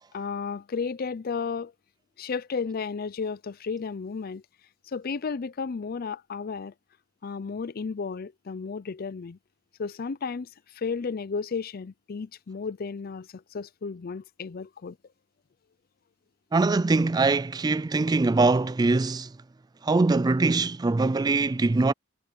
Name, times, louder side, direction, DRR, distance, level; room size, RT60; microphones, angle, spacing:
voice 1, 0.1-1.7 2.2-4.4 4.9-6.7 7.2-9.4 9.8-15.0, left 5 dB, 45° left, 0.5 m, -33 dB
voice 2, 16.5-19.3 19.8-21.9, right 3 dB, 20° right, 0.3 m, -22 dB
head